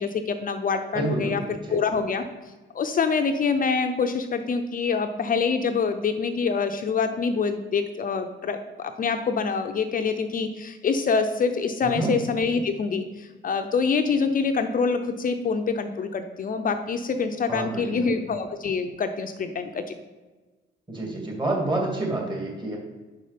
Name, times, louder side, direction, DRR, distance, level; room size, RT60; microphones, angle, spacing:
voice 1, 0.0-2.2 2.7-19.9, left 5 dB, 45° left, 7 dB, 0.6 m, -25 dB
voice 2, 0.9-1.3 1.7-1.8 11.8-12.1 17.5-18.0 20.9-22.8, right 2 dB, 25° right, -1 dB, 2.5 m, -28 dB
6.0 x 5.4 x 5.1 m, 1.3 s
cardioid pair, 90°, 20 cm